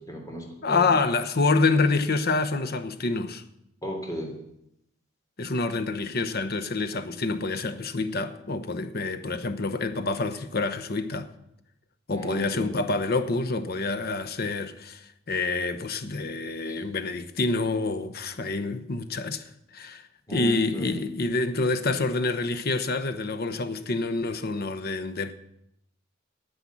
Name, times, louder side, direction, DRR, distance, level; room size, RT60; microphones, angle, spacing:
voice 1, 0.0-1.0 3.8-4.4 12.1-12.8 16.7-16.8 20.3-21.0, equal, 20° left, 3.3 m, -35 dB
voice 2, 0.6-3.4 5.4-11.3 12.1-19.5 19.7-25.3, left 3 dB, 55° left, 1.0 m, -27 dB
10.0 x 8.9 x 8.6 m
head